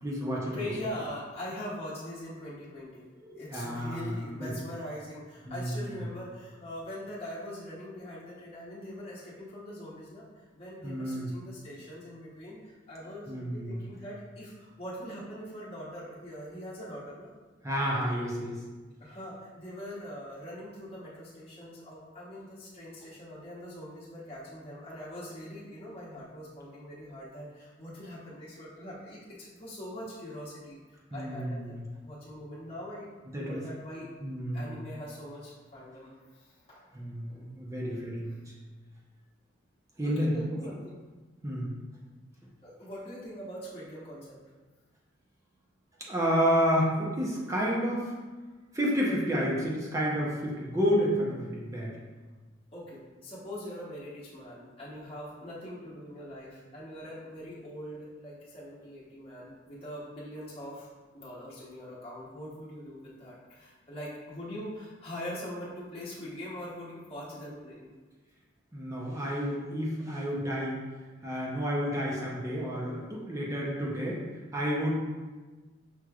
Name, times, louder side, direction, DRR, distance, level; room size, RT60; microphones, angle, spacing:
voice 1, 0.0-0.7 3.2-4.5 5.5-6.0 10.8-11.3 13.3-13.9 17.6-18.6 31.1-31.8 33.3-33.6 34.2-34.8 36.9-38.4 40.0-40.3 41.4-41.7 46.0-48.1 48.7-52.0 68.7-70.8 71.2-74.2 74.5-74.9, equal, 15° right, -4 dB, 0.6 m, -30 dB
voice 2, 0.5-3.0 3.3-17.3 19.0-30.8 31.1-31.8 32.0-33.1 33.4-34.1 34.5-36.8 40.0-41.0 42.6-44.4 52.7-67.9 74.8-74.9, equal, 30° left, -9 dB, 0.9 m, -42 dB
6.0 x 3.1 x 2.3 m, 1.3 s
head